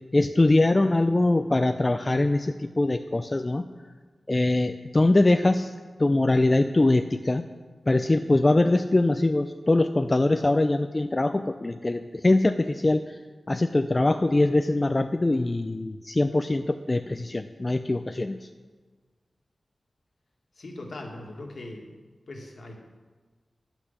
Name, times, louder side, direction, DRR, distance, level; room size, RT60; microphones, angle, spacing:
voice 1, 0.1-3.6 4.3-5.7 6.0-7.4 7.9-13.2 13.5-18.5, left 2 dB, 35° left, 8 dB, 0.5 m, -23 dB
voice 2, 20.6-22.0 22.3-22.8, left 2 dB, 70° left, 1 dB, 1.9 m, -40 dB
10.0 x 6.0 x 8.2 m, 1.4 s
cardioid pair, 45°, 0 cm